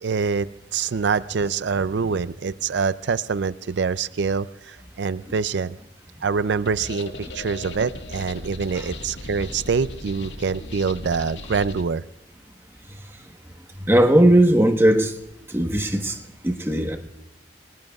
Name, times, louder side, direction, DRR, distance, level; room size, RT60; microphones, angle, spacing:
voice 1, 0.0-5.8 6.2-12.0, right 5 dB, 80° right, 0.5 m, -25 dB
sound 1, 6.7-11.8, left 1 dB, 85° left, 1.8 m, -37 dB
voice 2, 13.8-15.1 15.5-17.0, right 1 dB, 15° right, 1.2 m, -18 dB
30.0 x 19.0 x 2.4 m
head